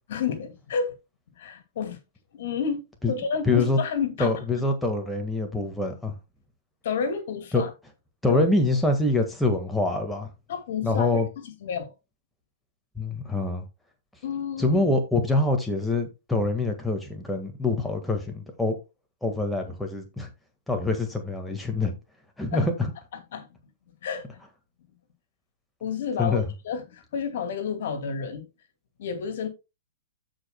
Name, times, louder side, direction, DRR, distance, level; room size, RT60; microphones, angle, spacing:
voice 1, 0.1-0.9 1.3-2.0 2.3-4.3 6.8-7.7 8.2-8.5 10.5-11.9 14.2-14.8 22.5-22.7 23.1-23.5 24.0-24.4 25.8-28.5 29.0-29.5, left 6 dB, 60° left, 2.3 m, -30 dB
voice 2, 3.4-3.8 4.2-6.1 7.5-7.6 8.2-10.3 10.8-11.3 13.0-13.6 14.6-18.7 19.2-20.3 20.7-21.9 22.4-22.7 26.2-26.4, left 2 dB, 5° left, 1.6 m, -25 dB
15.5 x 5.1 x 2.2 m
figure-of-eight pair, 115°, 0 cm